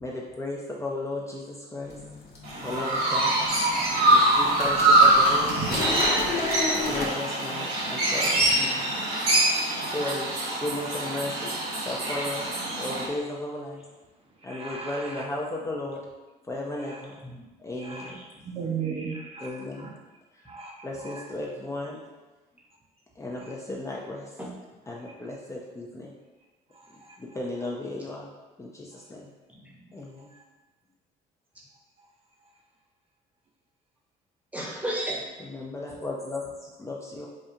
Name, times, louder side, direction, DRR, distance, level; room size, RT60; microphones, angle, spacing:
voice 1, 0.0-2.0 2.6-3.3 4.1-6.0 6.9-8.9 9.8-10.3 10.6-12.5 12.8-13.8 14.4-16.0 16.5-17.2 17.6-18.1 19.4-19.9 20.3-20.5 20.8-22.0 23.2-24.3 24.9-26.1 27.2-28.3 28.6-29.3 29.9-30.3 35.4-37.3, left 2 dB, 15° left, -3 dB, 0.5 m, -35 dB
sound 1, 1.8-7.1, left 3 dB, 70° left, 0.8 m, -33 dB
Chirp tweet, 2.4-13.0, right 2 dB, 80° right, 1.5 m, -24 dB
voice 2, 3.5-4.0 9.2-9.3 17.2-17.4 18.0-18.4 24.4-24.5 29.6-29.8 34.5-35.3, right 1 dB, 10° right, -2 dB, 0.8 m, -35 dB
voice 3, 14.4-15.2 16.8-17.0 17.8-18.1 18.4-19.9 20.4-21.2 23.4-23.5 26.7-27.2 30.3-30.4, right 6 dB, 35° right, -1 dB, 0.5 m, -37 dB
4.9 x 2.3 x 2.7 m, 1.2 s
cardioid pair, 110°, 17 cm